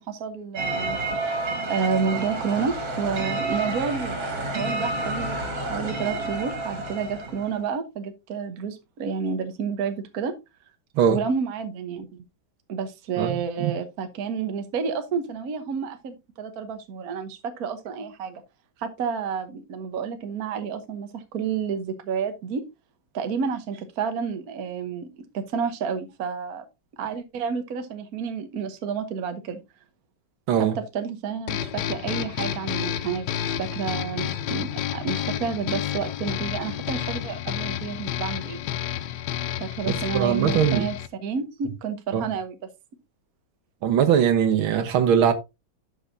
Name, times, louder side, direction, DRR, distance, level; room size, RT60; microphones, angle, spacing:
voice 1, 0.0-1.3 1.7-10.4 11.1-12.2 12.7-18.4 18.8-22.6 23.1-26.6 27.0-29.6 30.6-38.6 39.6-41.0 41.2-42.7, right 6 dB, 55° right, 1.4 m, -30 dB
sound 1, 0.6-7.6, right 2 dB, 70° right, 3.2 m, -30 dB
voice 2, 13.2-13.7 30.5-30.8 39.9-40.9 42.1-42.2 43.8-45.3, right 8 dB, 85° right, 1.9 m, -21 dB
sound 2, 31.5-41.1, left 10 dB, 70° left, 1.0 m, -30 dB
11.5 x 6.4 x 2.6 m
omnidirectional pair, 2.2 m